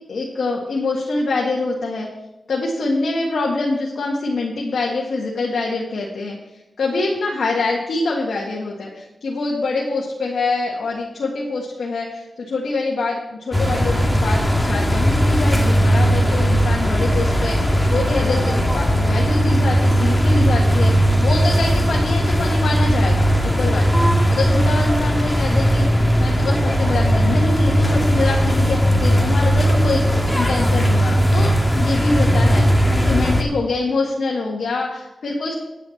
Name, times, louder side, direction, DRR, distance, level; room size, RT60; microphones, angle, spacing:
voice 1, 0.1-2.1 2.5-6.4 6.8-23.9 24.3-25.8 26.2-35.5, left 3 dB, 80° left, -3 dB, 1.8 m, -25 dB
sound 1, 13.5-33.4, equal, 10° left, 1.9 m, -17 dB
9.6 x 5.9 x 7.9 m, 0.97 s
cardioid pair, 55°, 0 cm